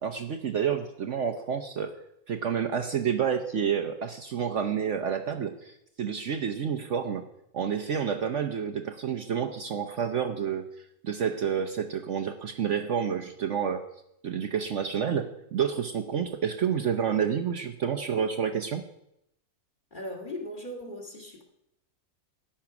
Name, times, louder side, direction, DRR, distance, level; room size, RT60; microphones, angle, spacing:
voice 1, 0.0-2.0 2.3-7.2 7.5-10.7 11.0-13.8 14.2-18.8, right 7 dB, 55° right, 6 dB, 1.0 m, -29 dB
voice 2, 19.9-21.4, left 1 dB, 30° left, 1 dB, 2.3 m, -38 dB
13.0 x 10.0 x 6.0 m, 0.80 s
omnidirectional pair, 1.6 m